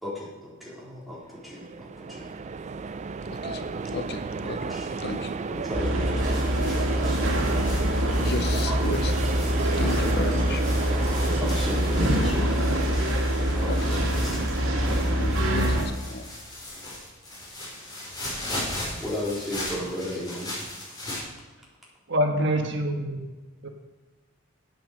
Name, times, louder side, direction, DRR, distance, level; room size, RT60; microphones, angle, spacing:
voice 1, 0.0-2.3 3.6-3.9 4.4-4.9 5.5-7.2 8.7-8.9 9.7-10.0 10.9-12.6 13.5-14.5 14.8-15.0 16.7-16.8 19.0-20.5, left 1 dB, ahead, -7 dB, 3.8 m, -35 dB
sound 1, 1.2-12.1, right 4 dB, 35° right, 0.4 m, -33 dB
voice 2, 3.3-3.6 3.9-5.4 8.2-9.1 9.8-10.7 13.7-14.0 15.2-16.3, left 3 dB, 50° left, 8 dB, 0.7 m, -34 dB
sound 2, 5.7-15.8, equal, 85° right, 2.3 m, -24 dB
sound 3, 6.2-21.2, left 1 dB, 20° left, 4.2 m, -38 dB
voice 3, 22.1-23.2 23.6-23.7, right 1 dB, 60° right, 3 dB, 1.4 m, -25 dB
9.4 x 8.9 x 6.5 m, 1.3 s
head